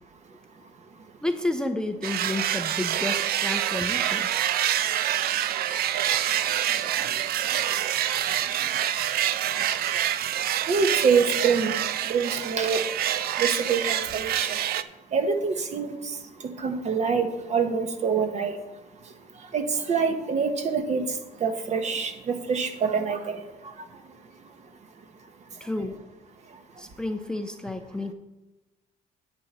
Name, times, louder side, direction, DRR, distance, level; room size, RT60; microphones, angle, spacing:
voice 1, 1.2-4.3 6.4-6.6 25.6-26.0 26.8-28.1, left 2 dB, 5° left, 7 dB, 0.6 m, -31 dB
sound 1, 2.0-14.8, right 11 dB, 65° right, 0.5 m, -26 dB
voice 2, 10.7-11.7 12.1-12.8 13.4-14.6 15.1-16.0 16.6-18.6 19.5-21.0 21.4-23.4, right 5 dB, 40° right, 7 dB, 1.2 m, -25 dB
10.5 x 9.0 x 4.2 m, 1.0 s
cardioid pair, 110°, 17 cm